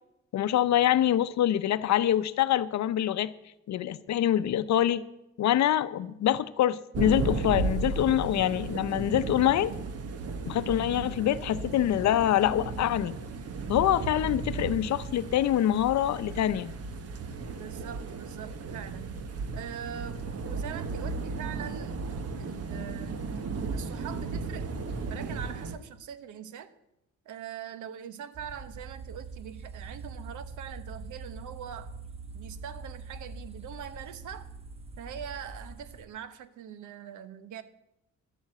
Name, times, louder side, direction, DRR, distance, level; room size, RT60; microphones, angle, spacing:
voice 1, 0.3-3.3 3.7-5.0 5.4-9.7 10.5-13.2 13.7-16.7, left 11 dB, 65° left, 0.7 m, -25 dB
sound 1, 6.9-25.8, right 4 dB, 55° right, 1.2 m, -35 dB
voice 2, 17.5-19.2 19.5-22.1 22.4-23.4 23.7-24.7 25.0-26.7 27.2-31.9 32.3-34.5 35.0-37.6, right 9 dB, 80° right, 1.0 m, -42 dB
sound 2, 28.3-36.1, right 3 dB, 20° right, 1.0 m, -43 dB
12.5 x 7.3 x 7.6 m
cardioid pair, 90°, 30 cm